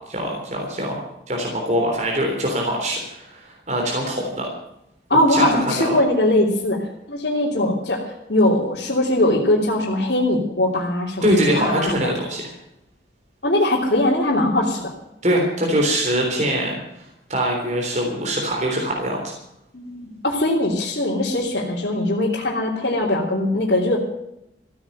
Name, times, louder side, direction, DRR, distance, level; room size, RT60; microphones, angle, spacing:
voice 1, 0.1-4.5 5.3-6.0 11.2-12.6 15.2-19.4, equal, 40° right, 0 dB, 3.5 m, -23 dB
voice 2, 5.1-11.9 13.4-14.9 19.7-24.0, left 1 dB, 60° left, -6 dB, 3.1 m, -21 dB
15.5 x 9.6 x 9.2 m, 0.80 s
head